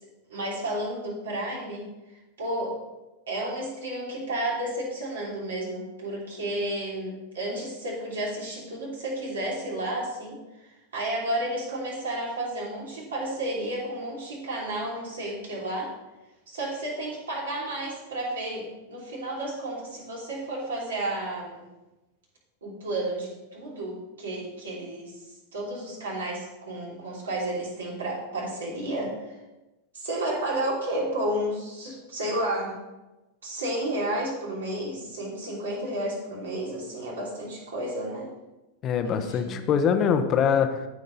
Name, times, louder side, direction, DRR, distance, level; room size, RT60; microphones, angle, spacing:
voice 1, 0.3-1.9 2.4-2.8 3.3-15.9 16.5-21.6 22.6-25.2 25.5-29.4 29.9-32.8 33.4-38.3 39.0-39.6, right 1 dB, 65° right, -3 dB, 3.1 m, -32 dB
voice 2, 38.8-40.9, left 7 dB, 30° left, 8 dB, 0.9 m, -23 dB
14.5 x 5.2 x 4.0 m, 1.0 s
figure-of-eight pair, 90°, 0 cm